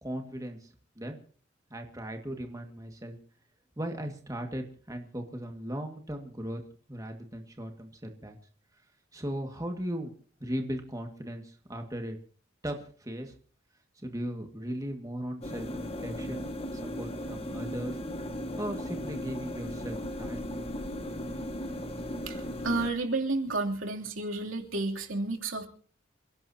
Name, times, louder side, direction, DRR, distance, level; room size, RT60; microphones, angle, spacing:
voice 1, 0.0-1.2 1.7-3.2 3.8-6.6 6.9-8.4 9.1-10.1 10.4-12.2 12.6-13.3 14.0-16.5 16.7-18.0 18.6-20.6, equal, 15° right, 4 dB, 1.9 m, -37 dB
sound 1, 15.4-22.9, left 1 dB, 30° left, 1.8 m, -37 dB
voice 2, 22.3-25.7, right 2 dB, 90° right, 1 dB, 3.0 m, -31 dB
28.0 x 17.5 x 2.8 m, 0.43 s
head